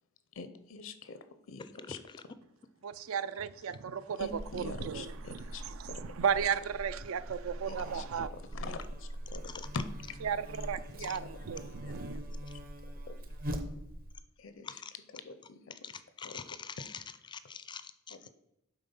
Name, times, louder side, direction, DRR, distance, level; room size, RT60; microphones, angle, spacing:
voice 1, 0.3-2.0 4.2-6.1 7.7-9.8 10.9-13.2 14.4-16.4 18.1-18.3, left 4 dB, 65° left, 0.6 m, -46 dB
voice 2, 2.8-4.3 4.5-5.1 5.8-8.3 10.2-12.2, right 7 dB, 80° right, 0.4 m, -34 dB
Buzz, 4.2-14.2, equal, 45° right, 0.7 m, -42 dB
voice 3, 16.2-16.9 17.3-18.2, left 6 dB, 20° left, 0.4 m, -44 dB
8.9 x 3.8 x 5.4 m
head